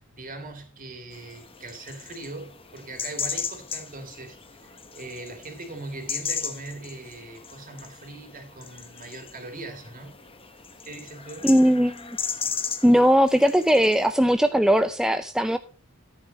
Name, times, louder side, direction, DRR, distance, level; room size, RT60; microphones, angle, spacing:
voice 1, 0.0-10.1 10.8-11.5, right 2 dB, 40° right, 3.4 m, -40 dB
sound 1, 1.1-14.1, left 7 dB, 25° left, 1.2 m, -36 dB
voice 2, 11.4-12.2 12.8-15.6, equal, 5° right, 0.5 m, -19 dB
14.0 x 9.8 x 3.1 m
head